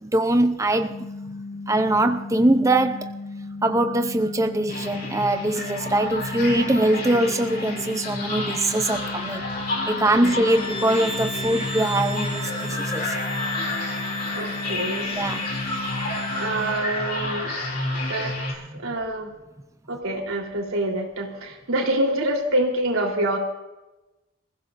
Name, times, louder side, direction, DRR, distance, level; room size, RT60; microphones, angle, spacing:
voice 1, 0.0-1.0 1.7-3.1 3.6-9.4 9.9-13.2 15.2-15.5, right 1 dB, 15° right, 0.6 m, -22 dB
sound 1, 0.9-16.8, left 3 dB, 85° left, 3.0 m, -36 dB
sound 2, 4.7-18.5, left 2 dB, 45° left, 4.0 m, -30 dB
voice 2, 10.0-10.3 14.3-15.3 16.3-17.6 17.9-19.3 19.9-23.4, right 1 dB, 90° right, 3.6 m, -27 dB
sound 3, 10.5-16.9, left 1 dB, 30° left, 3.9 m, -35 dB
26.5 x 15.5 x 2.6 m
head